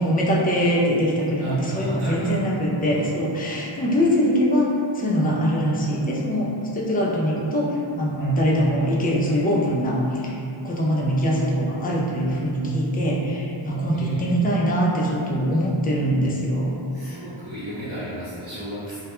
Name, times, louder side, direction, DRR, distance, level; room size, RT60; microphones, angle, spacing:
voice 1, 0.0-17.2, equal, 20° left, -4 dB, 0.3 m, -23 dB
voice 2, 1.4-2.3 2.8-3.1 8.2-8.6 13.9-14.5 16.9-19.0, equal, 60° right, -12 dB, 0.7 m, -35 dB
2.2 x 2.1 x 2.9 m, 2.7 s
wide cardioid pair, 70°, 50 cm